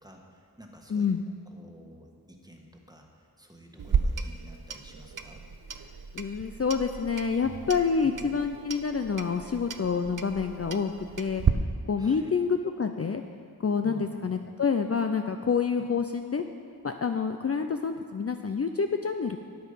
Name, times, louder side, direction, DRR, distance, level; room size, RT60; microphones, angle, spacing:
voice 1, 0.0-5.4 8.0-8.3 12.0-12.3 13.8-14.4, equal, 10° right, 1 dB, 1.4 m, -50 dB
voice 2, 0.9-1.2 6.1-11.4 11.9-13.2 13.6-16.4 16.8-19.4, left 5 dB, 40° left, 6 dB, 0.5 m, -28 dB
Clock, 3.8-11.5, right 6 dB, 55° right, 0.7 m, -33 dB
9.3 x 8.7 x 5.6 m, 2.2 s
wide cardioid pair, 45°, 38 cm